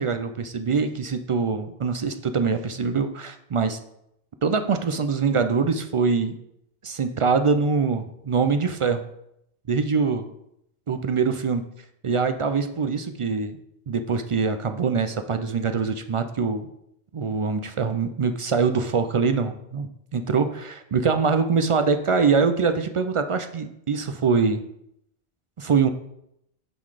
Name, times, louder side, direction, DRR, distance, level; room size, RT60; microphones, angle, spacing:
voice 1, 0.0-3.8 4.4-6.3 6.8-9.0 9.7-10.2 10.9-11.6 12.0-13.6 13.9-16.7 17.1-24.6 25.6-25.9, right 5 dB, 55° right, 8 dB, 0.3 m, -23 dB
7.8 x 3.9 x 4.8 m, 0.78 s
omnidirectional pair, 1.1 m